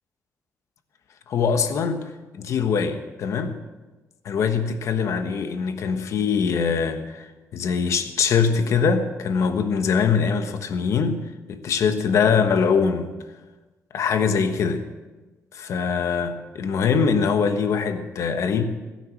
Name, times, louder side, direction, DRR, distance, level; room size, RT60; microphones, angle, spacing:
voice 1, 1.3-3.6 4.2-13.1 13.9-14.9 15.5-18.6, left 6 dB, 65° left, 8 dB, 1.3 m, -23 dB
16.0 x 10.5 x 6.2 m, 1.2 s
cardioid pair, 135°, 6 cm